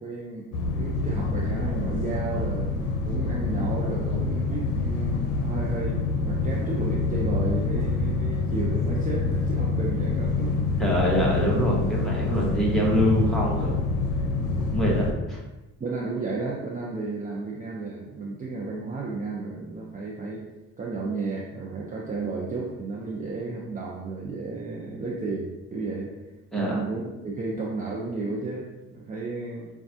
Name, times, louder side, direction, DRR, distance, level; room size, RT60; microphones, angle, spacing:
voice 1, 0.0-2.7 3.0-10.8 11.8-11.9 12.6-12.7 15.8-20.4 20.8-26.1 26.6-29.7, right 3 dB, 25° right, -4 dB, 0.6 m, -33 dB
sound 1, 0.5-15.1, left 3 dB, 90° left, 0.6 m, -26 dB
voice 2, 10.8-13.7 14.7-15.4 26.5-26.8, equal, ahead, -5 dB, 1.2 m, -24 dB
5.7 x 2.4 x 2.7 m, 1.1 s
cardioid pair, 90°, 30 cm